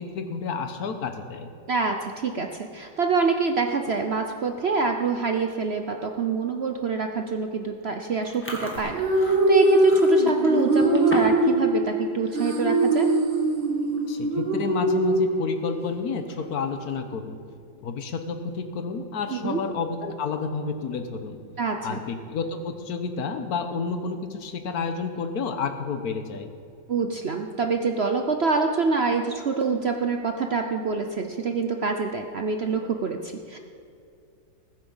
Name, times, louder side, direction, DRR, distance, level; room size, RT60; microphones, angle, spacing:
voice 1, 0.0-1.5 14.1-17.4 17.8-21.4 21.8-26.5, left 5 dB, 60° left, 7 dB, 1.4 m, -30 dB
voice 2, 1.7-13.1 19.3-19.6 21.6-22.0 26.9-33.6, right 4 dB, 65° right, 4 dB, 0.6 m, -26 dB
Chewing mastication, 8.2-11.5 11.8-12.1 12.5-12.8 13.5-13.6 13.8-14.2 14.6-14.7 16.1-16.7, equal, 5° left, 1.4 m, -38 dB
sound 1, 8.8-15.8, right 1 dB, 85° right, 2.4 m, -22 dB
20.0 x 7.9 x 5.6 m, 2.5 s
omnidirectional pair, 2.0 m